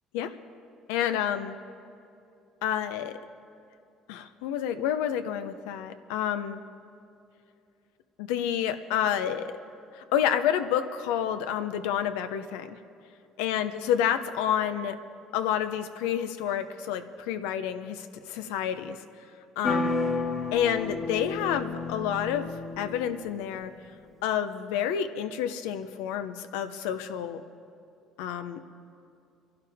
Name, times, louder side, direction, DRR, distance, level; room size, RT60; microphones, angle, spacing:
voice 1, 0.9-1.6 2.6-3.2 4.1-6.6 8.2-9.5 9.9-12.8 13.4-14.9 15.3-19.0 19.6-20.0 20.5-23.7 24.2-27.4 28.2-28.6, left 9 dB, 85° left, 9 dB, 0.8 m, -29 dB
sound 1, 19.6-23.4, left 3 dB, 30° left, 1.4 m, -31 dB
25.5 x 11.5 x 3.6 m, 2.5 s
supercardioid pair, 90°, 0 cm